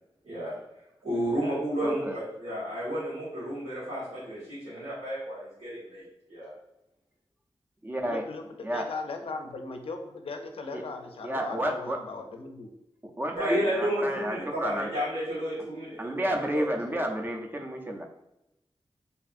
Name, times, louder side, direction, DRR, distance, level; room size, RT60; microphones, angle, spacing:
voice 1, 0.2-0.5 1.0-6.0 6.3-6.5 13.4-16.7 16.9-17.0, equal, 80° right, -12 dB, 1.2 m, -31 dB
voice 2, 1.8-2.2 7.8-8.3 8.6-8.9 10.7-10.8 11.2-12.1 13.0-14.9 16.0-18.1, right 1 dB, 20° right, 3 dB, 0.4 m, -31 dB
voice 3, 8.1-8.4 8.7-12.7, left 3 dB, 70° left, 5 dB, 0.4 m, -38 dB
2.5 x 2.5 x 2.4 m, 0.86 s
cardioid pair, 55°, 10 cm